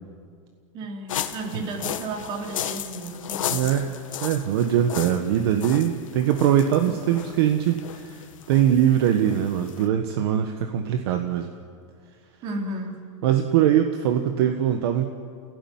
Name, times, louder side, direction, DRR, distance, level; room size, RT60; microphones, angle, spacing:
voice 1, 0.7-3.8 12.4-13.0, right 2 dB, 30° right, 2 dB, 3.4 m, -33 dB
sound 1, 1.1-9.9, left 10 dB, 80° left, 1.7 m, -35 dB
voice 2, 3.5-3.9 4.2-8.2 8.5-11.5 13.2-15.1, right 10 dB, 50° right, 6 dB, 1.4 m, -22 dB
30.0 x 16.5 x 9.4 m, 2.2 s
supercardioid pair, 170°, 17 cm